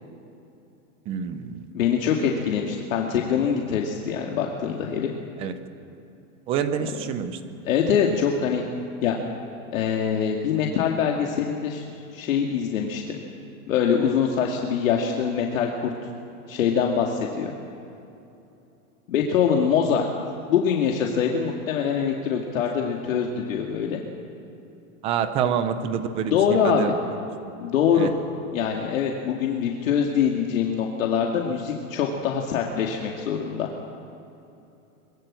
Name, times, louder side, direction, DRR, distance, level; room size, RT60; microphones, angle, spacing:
voice 1, 1.1-1.7 5.4-5.6 6.5-7.4 25.0-26.9 27.9-28.1, right 8 dB, 15° right, 10 dB, 0.6 m, -27 dB
voice 2, 1.7-5.1 6.8-6.9 7.7-8.6 9.0-9.2 9.7-11.9 12.1-13.2 13.7-15.9 16.5-17.5 19.1-20.0 20.5-24.0 26.3-26.9 27.6-28.1 28.5-33.7, left 7 dB, 70° left, 0 dB, 2.6 m, -24 dB
24.0 x 22.0 x 7.7 m, 2.8 s
supercardioid pair, 170°, 41 cm